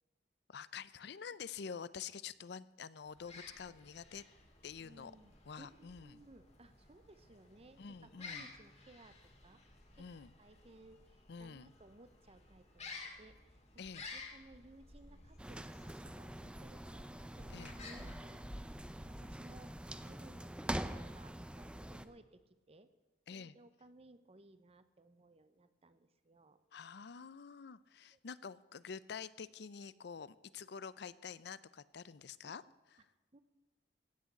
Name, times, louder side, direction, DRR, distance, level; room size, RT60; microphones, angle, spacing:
voice 1, 0.5-4.2 4.6-5.1 5.5-6.2 7.8-8.5 10.0-10.3 11.3-11.7 13.8-14.1 17.5-17.8 23.3-23.5 26.7-32.6 32.9-33.1, left 6 dB, 70° left, 17 dB, 0.5 m, -48 dB
sound 1, 3.1-19.8, left 3 dB, 40° left, 2.2 m, -54 dB
voice 2, 4.8-5.3 5.6-9.1 9.4-9.6 10.4-13.8 14.1-17.1 17.4-18.4 18.9-22.4 22.7-22.9 23.3-26.6 28.1-28.2 32.4-32.7 33.3-33.4, right 2 dB, 35° right, 12 dB, 0.8 m, -60 dB
sound 2, 15.4-22.1, right 1 dB, 5° right, 0.6 m, -45 dB
16.0 x 6.4 x 8.3 m, 1.2 s
head